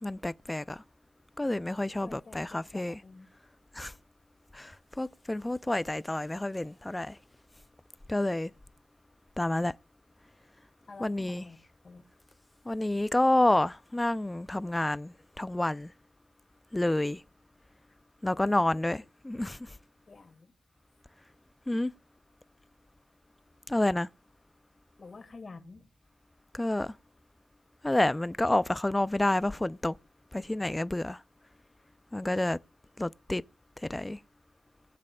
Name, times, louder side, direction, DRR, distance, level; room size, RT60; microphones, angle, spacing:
voice 1, 0.0-0.8 1.4-2.9 3.8-3.9 4.5-4.7 5.0-7.1 8.1-8.5 9.4-9.7 11.0-11.4 12.7-15.9 16.7-17.2 18.2-19.6 21.7-21.9 23.7-24.1 26.5-26.9 27.8-30.0 30.3-31.2 32.1-32.6 33.0-33.4 33.9-34.2, left 1 dB, 15° left, 0.5 m, -29 dB
voice 2, 2.0-3.3 10.9-11.6 11.8-12.1 18.3-19.0 20.1-20.5 25.0-25.9, left 3 dB, 45° left, 2.3 m, -49 dB
21.5 x 7.5 x 2.3 m
supercardioid pair, 55°, 0 cm